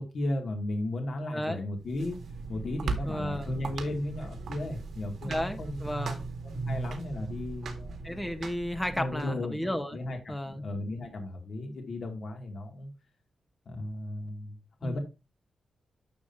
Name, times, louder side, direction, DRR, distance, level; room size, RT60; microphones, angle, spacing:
voice 1, 0.0-2.2 2.5-5.9 6.6-8.2 8.9-9.6 9.9-12.9 13.7-15.0, left 1 dB, 55° left, 2.4 m, -35 dB
sound 1, 1.8-9.3, right 4 dB, 70° right, 2.1 m, -38 dB
voice 2, 3.0-3.5 5.2-6.2 8.0-10.0 10.3-10.6 14.8-15.0, equal, 5° left, 1.2 m, -33 dB
11.5 x 6.9 x 2.8 m
wide cardioid pair, 160°, 0 cm